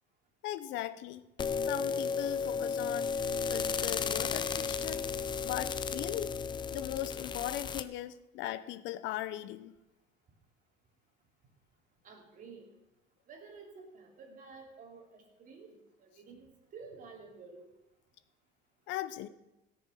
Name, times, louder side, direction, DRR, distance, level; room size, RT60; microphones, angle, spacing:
voice 1, 0.4-1.2 1.7-3.1 3.5-5.0 5.4-6.3 6.7-9.7 18.9-19.3, left 14 dB, 65° left, 15 dB, 0.7 m, -38 dB
sound 1, 1.4-7.8, left 6 dB, 20° left, 0.5 m, -34 dB
voice 2, 12.0-12.7 13.3-17.7, right 4 dB, 40° right, 1 dB, 2.8 m, -51 dB
16.0 x 6.9 x 6.4 m, 0.94 s
cardioid pair, 145°, 21 cm